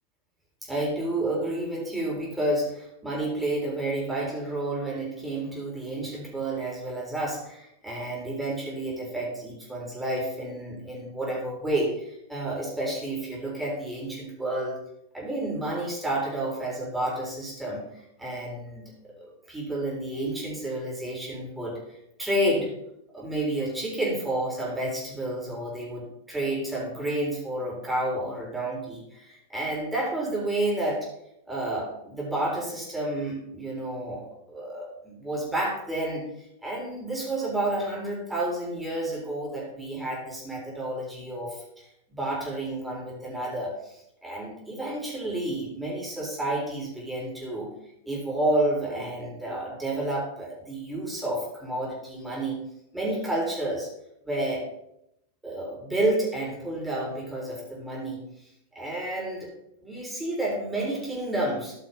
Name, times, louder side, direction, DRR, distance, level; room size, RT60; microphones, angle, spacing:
voice 1, 0.7-14.8 15.1-17.8 18.2-18.9 19.5-21.8 22.2-22.7 23.1-31.1 31.5-36.2 36.6-41.6 42.1-47.7 48.1-52.6 52.9-53.9 54.3-54.7 55.4-58.2 58.8-59.5 59.8-61.7, right 1 dB, 5° right, -4 dB, 3.8 m, -30 dB
13.0 x 5.7 x 5.3 m, 0.80 s
figure-of-eight pair, 90°, 0 cm